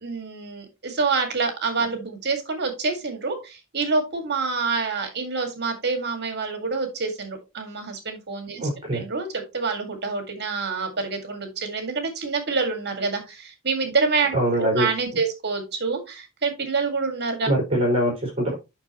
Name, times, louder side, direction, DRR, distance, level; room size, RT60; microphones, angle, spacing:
voice 1, 0.0-8.6 8.9-17.5, right 4 dB, 50° right, 6 dB, 2.0 m, -27 dB
voice 2, 8.5-9.0 14.3-14.9 17.5-18.5, right 1 dB, 25° right, 0 dB, 4.8 m, -23 dB
8.8 x 6.0 x 3.0 m, 0.25 s
head